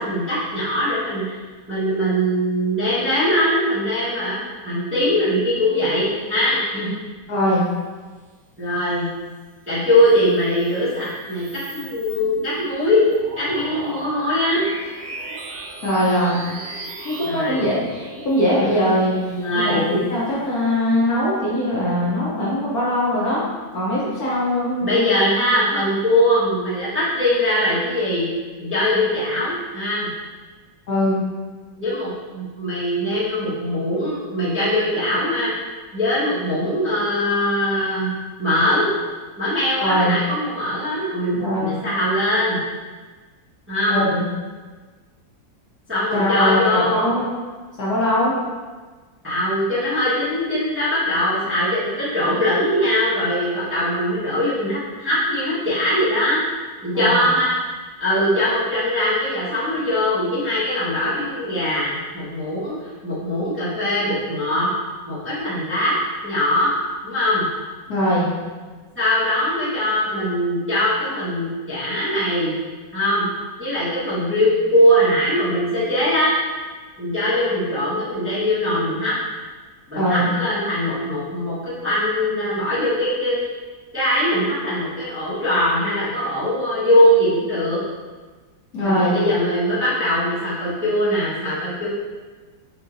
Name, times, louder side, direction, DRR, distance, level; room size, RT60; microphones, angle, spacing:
voice 1, 0.0-1.3 1.7-6.9 8.6-9.1 9.7-11.5 11.7-13.0 13.4-14.6 17.2-17.6 19.3-19.8 24.8-28.3 28.6-30.1 31.8-35.5 35.9-38.1 38.4-38.9 39.4-42.6 43.7-44.1 45.9-47.1 49.2-56.4 56.8-57.5 58.0-64.7 65.1-65.9 66.2-66.8 67.0-67.4 68.9-72.6 72.9-73.3 73.6-76.4 77.0-79.1 79.9-83.5 83.9-87.8 88.8-91.9, left 1 dB, 10° right, -11 dB, 0.9 m, -21 dB
voice 2, 7.3-7.6 15.8-16.4 17.0-23.5 23.7-25.0 28.9-29.0 30.9-31.2 39.8-40.2 41.3-41.7 43.9-44.3 46.1-47.2 47.8-48.4 56.9-57.3 67.9-68.3 79.9-80.3 88.7-89.1, equal, 60° left, -7 dB, 1.2 m, -21 dB
sound 1, 9.8-20.7, right 2 dB, 70° right, 0.6 m, -38 dB
6.1 x 2.7 x 2.6 m, 1.4 s
omnidirectional pair, 2.0 m